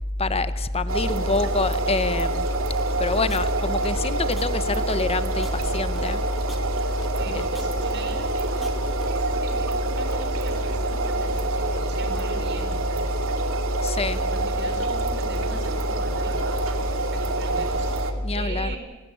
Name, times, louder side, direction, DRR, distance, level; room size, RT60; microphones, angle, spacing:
voice 1, 0.2-2.5 3.0-6.2 7.3-7.4 13.8-14.2 18.2-18.8, left 2 dB, 30° left, 13 dB, 1.1 m, -25 dB
sound 1, 0.9-18.1, right 3 dB, 80° right, 2.5 m, -28 dB
sound 2, 2.8-9.1, equal, ahead, 3.3 m, -45 dB
voice 2, 7.1-13.1 14.2-18.8, right 2 dB, 60° right, 5 dB, 4.9 m, -39 dB
30.0 x 17.5 x 8.6 m, 1.2 s
head